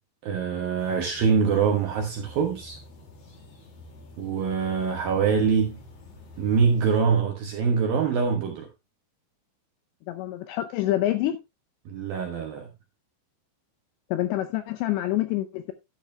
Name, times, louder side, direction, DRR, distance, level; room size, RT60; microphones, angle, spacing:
voice 1, 0.2-2.8 4.2-5.8 6.4-8.7 11.9-12.7, right 6 dB, 70° right, 2.2 m, -24 dB
sound 1, 0.8-7.0, left 1 dB, 45° left, 2.4 m, -48 dB
voice 2, 10.1-11.4 14.1-15.7, left 14 dB, 80° left, 2.6 m, -27 dB
11.5 x 10.5 x 2.2 m
omnidirectional pair, 5.8 m